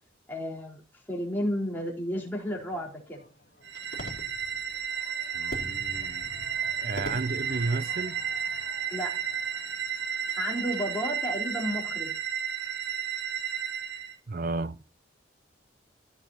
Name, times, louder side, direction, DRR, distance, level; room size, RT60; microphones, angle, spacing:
voice 1, 0.3-0.8 1.1-3.2 8.9-9.2 10.4-12.1, equal, 10° left, 4.4 m, -32 dB
Fireworks, 2.5-10.8, left 1 dB, 50° left, 4.1 m, -45 dB
sound 1, 3.6-14.2, right 8 dB, 70° right, 1.9 m, -33 dB
voice 2, 5.3-6.3 6.8-8.2 14.3-14.8, right 3 dB, 50° right, 0.5 m, -32 dB
16.0 x 7.1 x 4.4 m
head